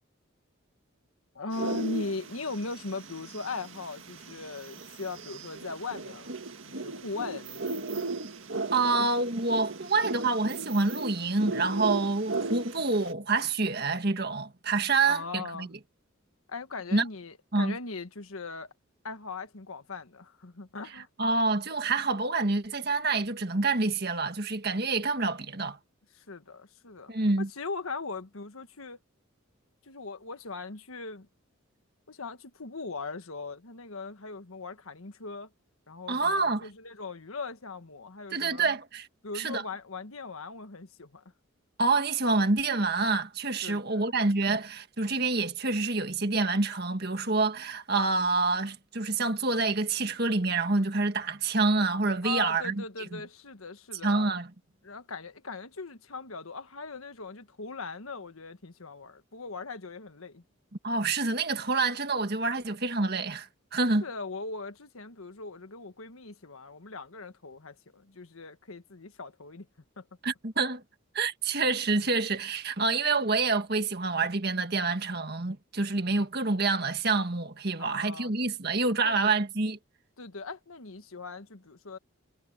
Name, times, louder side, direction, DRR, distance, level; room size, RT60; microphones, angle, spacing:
voice 1, 1.3-6.4 6.7-7.8 15.0-15.7 16.5-18.7 19.0-21.1 26.1-29.0 29.8-31.3 32.1-35.5 35.9-38.7 39.2-41.2 43.6-44.1 52.2-54.3 54.8-60.4 64.0-69.7 70.0-70.1 77.8-78.3 79.0-79.4 80.2-82.0, left 3 dB, 85° left, 1.5 m, -39 dB
sound 1, 1.5-13.1, right 3 dB, 70° right, 2.0 m, -37 dB
voice 2, 8.7-15.7 16.9-17.0 17.5-17.8 21.2-25.8 27.1-27.5 36.1-36.7 38.3-39.1 39.3-39.6 41.8-52.8 53.1-53.2 54.0-54.5 60.8-64.0 70.2-70.8 71.1-79.8, right 3 dB, 50° right, 1.8 m, -27 dB
head